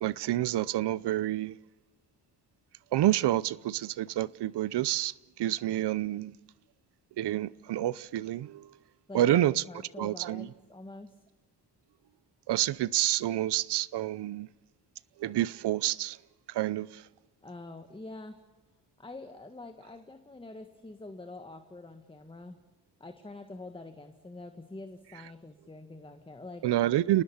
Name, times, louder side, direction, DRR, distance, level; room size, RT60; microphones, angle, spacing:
voice 1, 0.0-1.6 2.9-6.3 7.2-8.7 9.1-9.6 10.0-10.5 12.5-14.5 15.2-16.2 16.5-17.0 26.6-27.2, right 14 dB, 75° right, 0.7 m, -28 dB
voice 2, 9.1-11.1 17.4-18.4 19.0-22.6 23.0-26.6, left 2 dB, 10° left, 1.7 m, -45 dB
29.5 x 19.5 x 7.2 m
cardioid pair, 105°, 41 cm